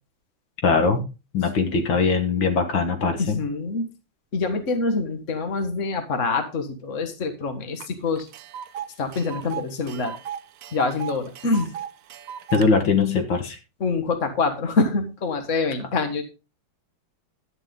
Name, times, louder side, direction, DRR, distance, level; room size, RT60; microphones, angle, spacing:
voice 1, 0.6-1.1 1.3-3.4 12.5-13.6, left 4 dB, 75° left, 6 dB, 2.3 m, -21 dB
voice 2, 3.2-3.9 4.3-8.3 9.0-10.2 10.7-11.7 13.8-16.2, left 3 dB, 40° left, 7 dB, 1.9 m, -25 dB
Tick, 7.8-7.9 8.2-12.7, right 9 dB, 70° right, 0.8 m, -36 dB
11.5 x 9.1 x 3.8 m, 0.30 s
omnidirectional pair, 2.1 m